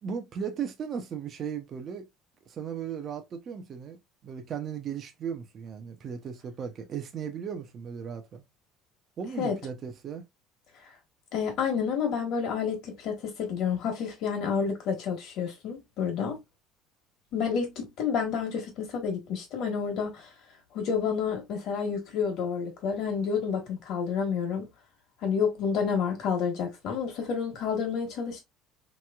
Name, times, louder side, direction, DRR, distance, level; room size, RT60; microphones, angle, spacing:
voice 1, 0.0-2.1 2.5-8.4 9.2-10.2, right 7 dB, 30° right, 0.5 m, -36 dB
voice 2, 11.3-16.4 17.3-20.3 20.7-24.7 25.2-28.4, left 6 dB, 50° left, 1.2 m, -29 dB
3.2 x 3.0 x 2.2 m
cardioid pair, 170°, 0 cm